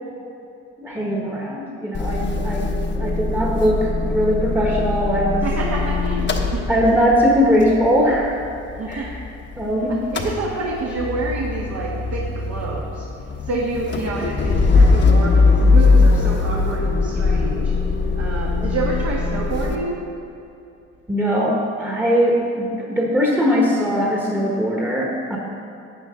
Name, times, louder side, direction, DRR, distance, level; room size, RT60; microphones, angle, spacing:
voice 1, 0.8-2.7 2.9-5.5 6.7-8.3 8.9-9.1 9.6-10.0 21.1-25.4, equal, 5° right, -2 dB, 1.3 m, -20 dB
Motor vehicle (road) / Engine starting / Idling, 1.9-9.7 9.9-19.8, left 3 dB, 40° left, 1.0 m, -20 dB
voice 2, 5.4-6.9 8.8-9.1 10.1-13.0 13.4-17.7 18.1-20.0, right 3 dB, 55° right, -4 dB, 1.5 m, -28 dB
11.5 x 8.6 x 3.7 m, 2.7 s
cardioid pair, 90°, 30 cm